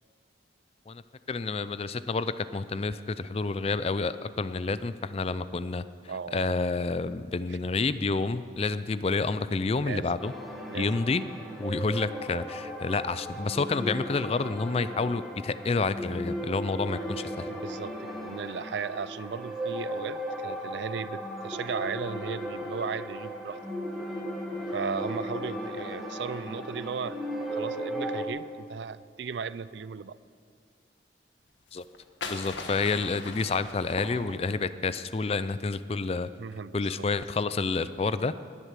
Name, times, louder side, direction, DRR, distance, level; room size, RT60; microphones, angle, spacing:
voice 1, 1.3-5.8 6.3-10.3 10.7-11.2 11.6-17.5 31.7-31.8 32.3-36.3 36.7-38.3, left 3 dB, 30° left, 14 dB, 0.4 m, -29 dB
voice 2, 6.1-6.6 7.5-7.6 9.8-10.1 10.7-10.9 17.5-23.6 24.7-27.2 27.5-30.2 36.4-37.1, right 6 dB, 70° right, 17 dB, 0.4 m, -36 dB
sound 1, 10.2-28.3, equal, ahead, 1.6 m, -36 dB
sound 2, 31.7-34.7, left 3 dB, 75° left, 1.5 m, -39 dB
19.5 x 8.1 x 7.5 m, 2.2 s
head